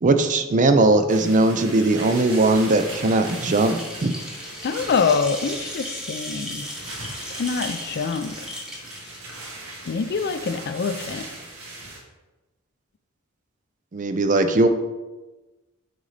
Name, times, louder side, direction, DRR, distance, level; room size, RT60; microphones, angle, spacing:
voice 1, 0.0-4.1 13.9-14.7, right 2 dB, 35° right, 8 dB, 0.4 m, -19 dB
sound 1, 1.1-12.0, right 2 dB, 70° right, 1.7 m, -39 dB
sound 2, 1.5-9.9, left 1 dB, 5° right, 1.0 m, -37 dB
voice 2, 4.6-6.7 7.3-8.5 9.9-11.2, left 5 dB, 50° left, 10 dB, 0.4 m, -25 dB
8.7 x 4.0 x 3.3 m, 1.2 s
head